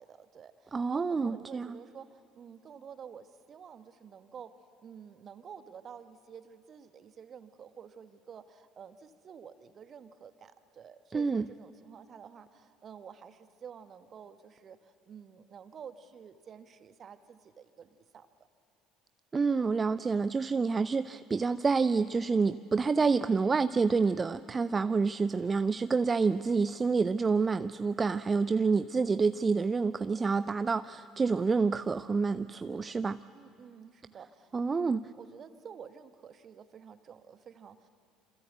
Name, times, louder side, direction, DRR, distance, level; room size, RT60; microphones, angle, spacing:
voice 1, 0.0-4.5 4.8-18.3 33.3-37.9, right 7 dB, 40° right, 1.4 m, -50 dB
voice 2, 0.7-1.7 11.1-11.4 19.3-33.2 34.5-35.0, right 4 dB, 25° right, 0.6 m, -28 dB
27.5 x 26.5 x 8.2 m
figure-of-eight pair, 60°, 0 cm